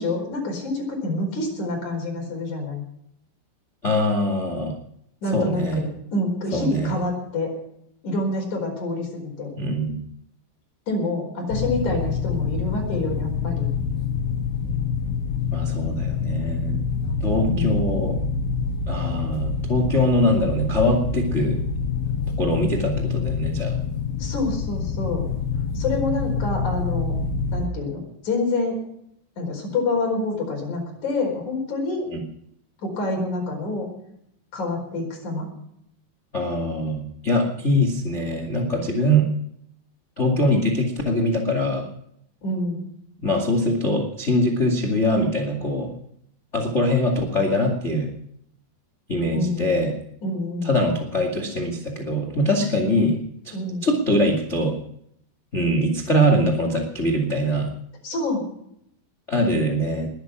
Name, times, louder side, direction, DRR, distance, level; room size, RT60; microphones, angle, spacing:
voice 1, 0.0-2.8 5.2-7.5 8.0-9.5 10.9-13.7 17.5-17.8 24.2-25.2 25.7-27.1 27.5-28.7 29.4-32.1 32.8-33.9 34.5-35.5 42.4-42.9 49.3-49.9 50.2-50.7 53.5-53.8 58.0-58.5, left 2 dB, 40° left, 1 dB, 5.6 m, -27 dB
voice 2, 3.8-4.8 5.3-5.8 6.5-7.0 9.5-10.0 15.5-16.8 17.2-18.2 18.8-21.6 22.4-23.7 32.1-32.2 36.3-39.3 40.2-41.9 43.2-45.9 46.5-48.1 49.1-49.9 50.6-53.2 53.4-53.5 53.8-54.8 55.5-57.7 59.3-60.1, equal, 80° left, 3 dB, 0.6 m, -22 dB
sound 1, 11.5-27.7, left 5 dB, 60° left, 3.1 m, -26 dB
20.5 x 10.0 x 6.1 m, 0.73 s
omnidirectional pair, 5.6 m